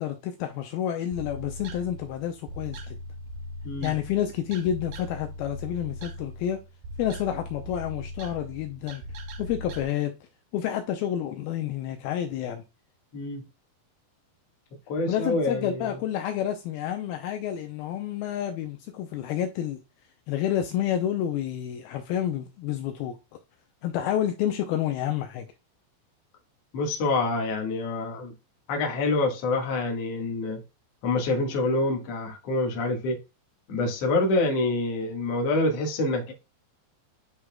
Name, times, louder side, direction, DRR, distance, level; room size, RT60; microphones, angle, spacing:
voice 1, 0.0-3.0 3.8-6.6 7.0-9.0 9.4-10.1 10.5-12.6 15.1-19.8 20.3-23.2 23.8-25.5, left 10 dB, 90° left, 2.1 m, -29 dB
sound 1, 1.1-9.8, left 1 dB, 75° right, 1.9 m, -40 dB
voice 2, 3.6-3.9 13.1-13.4 14.9-15.9 26.7-28.3 28.7-30.6 31.0-33.2 33.7-36.3, left 2 dB, 60° left, 1.7 m, -26 dB
10.5 x 4.8 x 2.2 m
omnidirectional pair, 5.2 m